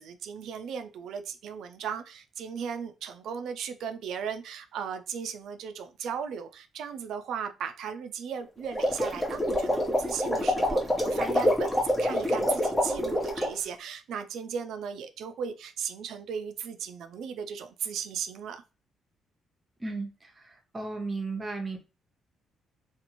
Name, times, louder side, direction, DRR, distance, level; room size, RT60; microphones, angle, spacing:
voice 1, 0.0-18.6, right 7 dB, 75° right, 0.3 m, -36 dB
sound 1, 8.6-13.6, left 1 dB, 10° left, 0.9 m, -26 dB
voice 2, 19.8-21.8, right 3 dB, 25° right, 0.8 m, -35 dB
2.5 x 2.4 x 2.9 m
cardioid pair, 90°, 0 cm